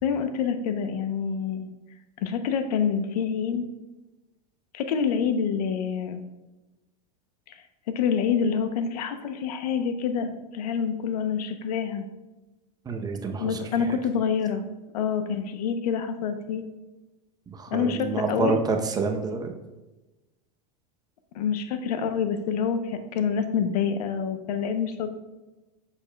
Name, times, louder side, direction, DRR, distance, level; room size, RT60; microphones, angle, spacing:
voice 1, 0.0-1.7 2.2-3.6 4.7-6.2 7.5-7.6 7.9-12.0 13.4-14.6 14.9-16.6 17.7-18.6 21.3-25.1, left 7 dB, 80° left, 9 dB, 0.8 m, -27 dB
voice 2, 12.9-13.6 17.5-19.5, right 4 dB, 20° right, 4 dB, 0.7 m, -28 dB
7.1 x 6.8 x 2.3 m, 1.1 s
supercardioid pair, 125°, 20 cm